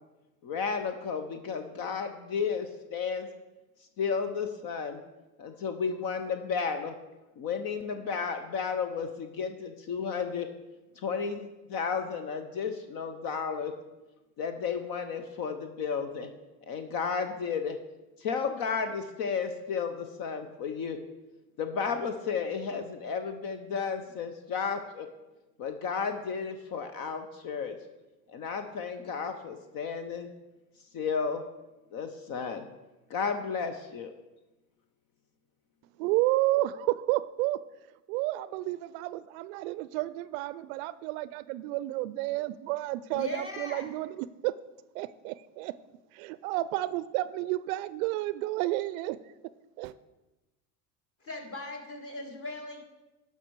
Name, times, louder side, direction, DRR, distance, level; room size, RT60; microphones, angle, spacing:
voice 1, 0.4-3.3 4.0-5.0 5.4-6.9 7.4-10.5 11.0-13.7 14.4-16.3 16.7-17.8 18.2-21.0 21.6-25.1 25.6-27.7 28.3-30.3 30.9-31.4 31.9-32.6 33.1-34.1, left 6 dB, 50° left, 8 dB, 0.8 m, -33 dB
voice 2, 36.0-37.6 38.1-44.5 44.9-45.7 46.1-49.2 49.8-49.9, right 17 dB, 65° right, 17 dB, 0.5 m, -31 dB
voice 3, 43.1-43.9 51.2-52.8, left 2 dB, 30° left, 2 dB, 2.1 m, -39 dB
11.5 x 5.6 x 4.6 m, 1.1 s
hypercardioid pair, 85°, 46 cm